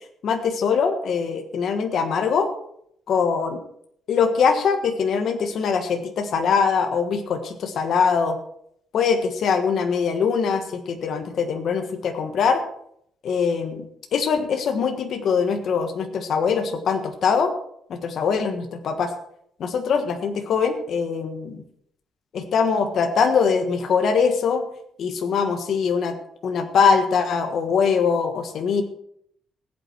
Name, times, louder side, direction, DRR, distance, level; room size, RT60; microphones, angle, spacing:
voice 1, 0.2-2.5 3.1-3.6 4.1-8.4 8.9-12.6 13.2-13.8 14.1-17.5 17.9-19.1 19.6-21.6 22.3-24.6 25.0-26.1 26.4-28.8, left 6 dB, 50° left, 5 dB, 1.4 m, -22 dB
20.0 x 8.5 x 4.5 m, 0.71 s
cardioid pair, 175°, 0 cm